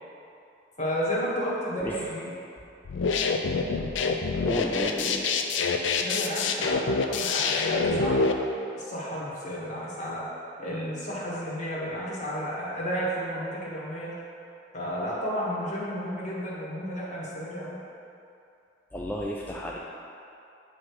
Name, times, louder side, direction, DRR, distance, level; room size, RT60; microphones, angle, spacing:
voice 1, 0.8-2.4 6.0-8.3 8.7-10.2 10.6-14.1 14.7-17.8, equal, 40° left, -6 dB, 1.3 m, -32 dB
sound 1, 2.9-8.3, left 4 dB, 85° left, 0.4 m, -26 dB
voice 2, 4.5-5.2 18.9-19.8, equal, 10° left, -4 dB, 0.3 m, -32 dB
7.5 x 3.2 x 4.7 m, 2.7 s
head